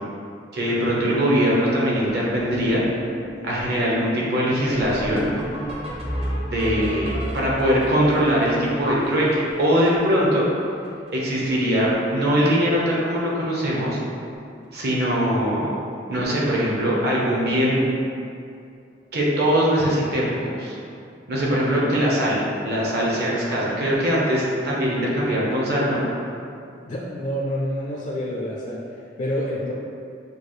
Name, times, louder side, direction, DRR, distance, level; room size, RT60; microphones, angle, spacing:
voice 1, 0.5-2.8 3.4-5.3 6.4-10.5 11.1-14.0 14.7-15.7 16.1-17.8 19.1-20.8 21.3-22.4 22.6-26.0, equal, 60° right, -5 dB, 1.0 m, -21 dB
sound 1, 2.0-10.3 10.5-10.6 10.8-11.1 11.4-11.9 12.2-12.5 13.3-13.4 13.8-13.9 14.2-14.3 16.6-16.7 19.0-19.1, equal, 35° right, 0.7 m, -33 dB
voice 2, 26.8-29.7, equal, 40° left, -4 dB, 0.4 m, -28 dB
6.4 x 2.4 x 3.2 m, 2.5 s
head